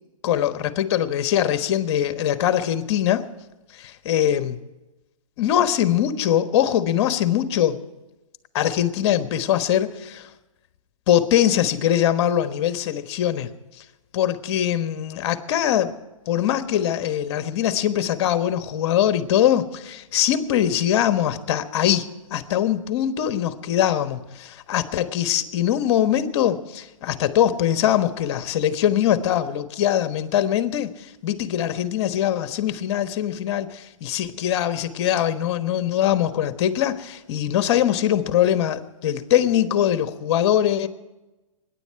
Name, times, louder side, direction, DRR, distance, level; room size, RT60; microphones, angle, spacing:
voice 1, 0.2-3.2 3.7-4.6 5.4-7.8 8.5-10.3 11.1-13.5 14.1-15.9 16.3-40.9, left 11 dB, 50° left, 1.3 m, -22 dB
23.0 x 10.5 x 4.7 m
hypercardioid pair, 130°, 18 cm